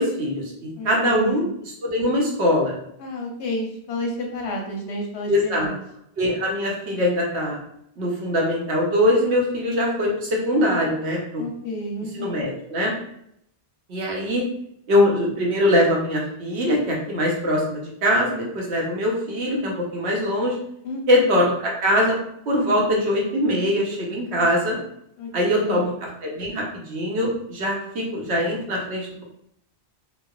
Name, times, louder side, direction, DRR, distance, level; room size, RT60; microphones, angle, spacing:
voice 1, 0.0-2.7 5.3-5.7 6.2-7.6 8.0-11.4 12.1-12.9 13.9-14.4 14.9-20.6 21.1-22.2 22.5-24.8 25.3-25.9 26.2-29.2, left 1 dB, 85° right, -2 dB, 1.1 m, -22 dB
voice 2, 0.8-1.5 3.0-5.8 11.4-12.5 20.8-21.4 25.2-25.8, left 1 dB, 85° left, 0 dB, 1.0 m, -31 dB
3.3 x 2.0 x 2.3 m, 0.73 s
omnidirectional pair, 1.1 m